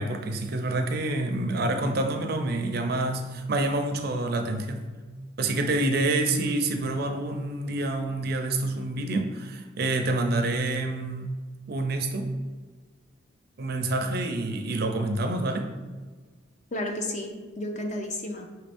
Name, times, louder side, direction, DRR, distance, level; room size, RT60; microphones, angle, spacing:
voice 1, 0.0-4.8 5.4-11.4 11.7-12.3 13.6-15.7, right 2 dB, 50° right, 5 dB, 0.4 m, -27 dB
voice 2, 16.7-18.6, left 1 dB, 35° left, 3 dB, 0.5 m, -32 dB
5.7 x 2.5 x 3.4 m, 1.4 s
head